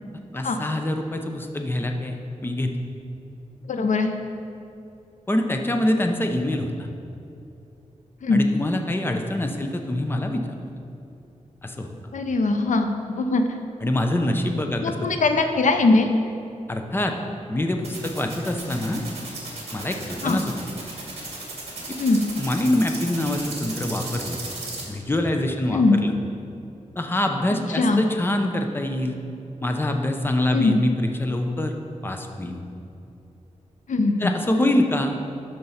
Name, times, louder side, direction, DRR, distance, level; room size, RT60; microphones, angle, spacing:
voice 1, 0.3-2.1 2.4-2.7 5.3-6.7 8.3-10.4 11.6-11.9 13.8-14.9 16.7-17.1 17.5-19.0 19.7-20.7 21.9-22.0 22.4-24.4 24.9-26.1 27.0-29.2 29.6-31.8 32.0-32.6 34.2-35.2, left 1 dB, 15° left, 4 dB, 0.7 m, -25 dB
voice 2, 3.7-4.1 8.2-8.5 12.1-13.4 14.8-16.1 20.2-20.4 22.0-22.2 25.7-26.0 27.7-28.0 30.5-30.8 33.9-34.3, left 3 dB, 80° left, 6 dB, 0.6 m, -21 dB
sound 1, 17.8-24.8, right 3 dB, 55° right, 2.1 m, -35 dB
12.0 x 4.6 x 5.6 m, 2.7 s
wide cardioid pair, 140°, 13 cm